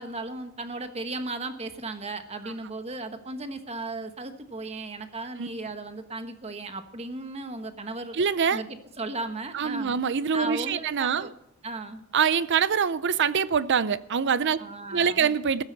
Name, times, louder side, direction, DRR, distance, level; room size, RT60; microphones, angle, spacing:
voice 1, 0.0-8.2 8.5-9.9 10.3-11.3 11.6-12.1 14.6-15.3, right 2 dB, 30° right, 1.3 m, -36 dB
voice 2, 8.1-8.6 9.5-11.3 12.1-14.6 14.9-15.6, right 6 dB, 55° right, 0.5 m, -24 dB
14.5 x 13.0 x 4.0 m
head